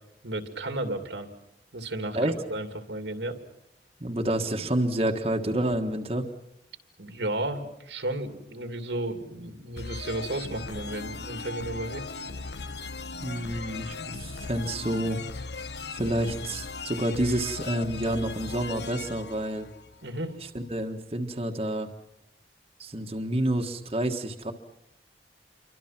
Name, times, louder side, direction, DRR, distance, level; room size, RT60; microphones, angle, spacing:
voice 1, 0.2-1.3 1.7-3.4 7.0-12.0 20.0-20.4, right 1 dB, 90° right, 7 dB, 2.9 m, -33 dB
voice 2, 2.1-2.5 4.0-6.3 13.2-15.2 15.9-19.7 20.4-21.9 22.8-24.5, right 1 dB, 35° right, 3 dB, 1.5 m, -29 dB
sound 1, 9.8-20.4, left 4 dB, 80° left, 1.0 m, -38 dB
28.5 x 24.0 x 6.0 m, 0.84 s
head